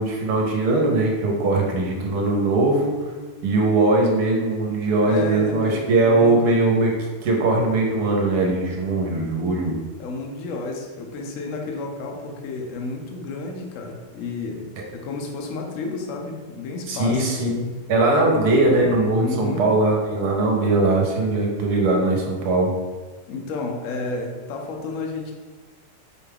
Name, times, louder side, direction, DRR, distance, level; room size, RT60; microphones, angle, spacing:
voice 1, 0.0-3.0 3.4-6.9 7.2-9.7 16.9-22.7, right 2 dB, 70° right, 0 dB, 1.2 m, -20 dB
voice 2, 5.0-6.5 10.0-17.3 19.2-19.7 23.3-25.3, left 3 dB, 70° left, 2 dB, 0.8 m, -31 dB
4.7 x 2.2 x 3.3 m, 1.3 s
omnidirectional pair, 1.9 m